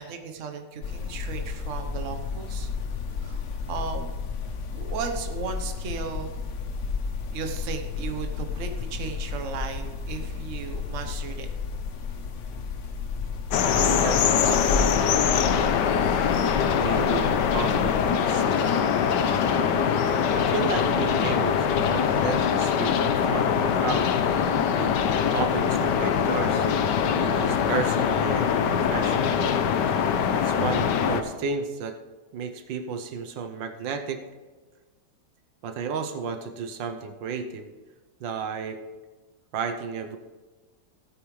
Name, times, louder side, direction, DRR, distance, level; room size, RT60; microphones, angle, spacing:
voice 1, 0.0-2.7 3.2-4.1 4.7-6.4 7.3-11.5, right 6 dB, 50° right, 6 dB, 1.2 m, -36 dB
sound 1, 0.8-18.1, left 5 dB, 55° left, 0.9 m, -32 dB
sound 2, 13.5-31.2, left 7 dB, 70° left, 1.3 m, -23 dB
voice 2, 13.7-15.0 16.8-18.0 18.2-19.0 20.3-24.1 24.8-24.9 25.2-26.7 27.3-29.5 29.9-30.0 30.3-32.0 32.3-34.2 35.6-37.7 38.2-38.8 39.5-40.2, right 5 dB, 80° right, 8 dB, 1.5 m, -33 dB
16.5 x 8.8 x 3.2 m, 1.3 s
omnidirectional pair, 2.0 m